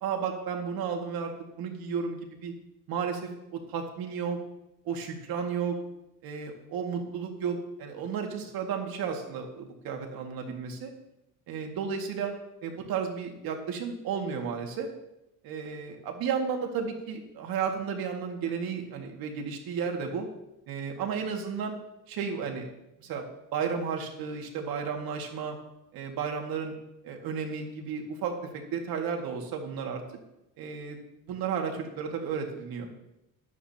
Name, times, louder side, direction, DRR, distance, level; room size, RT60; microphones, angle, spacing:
voice 1, 0.0-2.5 2.9-4.4 4.8-5.8 6.2-10.9 11.5-12.3 12.6-14.9 15.4-20.3 20.7-21.8 22.1-22.7 23.0-23.2 23.5-25.6 25.9-26.7 27.0-30.0 30.6-31.0 31.2-32.9, right 6 dB, 75° right, 2 dB, 2.2 m, -33 dB
16.0 x 11.0 x 2.9 m, 0.90 s
cardioid pair, 120°, 36 cm